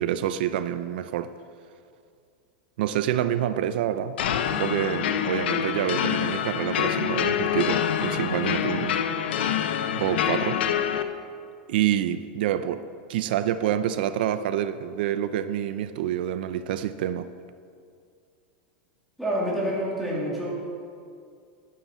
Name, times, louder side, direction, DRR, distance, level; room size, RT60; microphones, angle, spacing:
voice 1, 0.0-1.3 2.8-4.2 4.6-9.0 9.9-10.6 11.7-12.8 13.1-17.3, right 11 dB, 70° right, 12 dB, 0.6 m, -27 dB
sound 1, 4.2-11.0, left 9 dB, 85° left, 0.9 m, -26 dB
voice 2, 19.2-20.5, equal, ahead, -6 dB, 3.1 m, -27 dB
11.0 x 10.0 x 7.5 m, 2.3 s
supercardioid pair, 150°, 6 cm